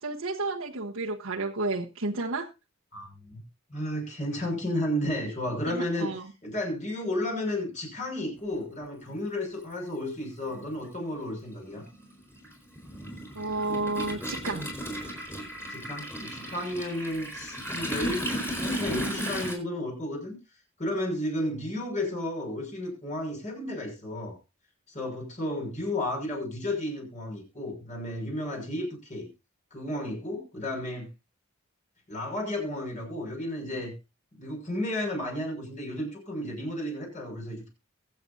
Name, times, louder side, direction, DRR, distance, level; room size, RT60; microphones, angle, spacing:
voice 1, 0.0-2.5 5.6-6.3 13.3-14.7, right 2 dB, 90° right, -2 dB, 1.3 m, -31 dB
voice 2, 2.9-3.4 3.7-6.1 6.4-11.8 15.7-18.3 18.6-20.3 20.8-24.4 24.9-29.3 29.7-31.1 32.1-33.9 34.4-37.7, left 1 dB, 35° left, 0 dB, 6.2 m, -33 dB
Toilet flush, 9.1-9.2 10.4-10.6 10.9-19.5, equal, 10° left, 4.5 m, -35 dB
23.0 x 7.9 x 2.7 m, 0.26 s
head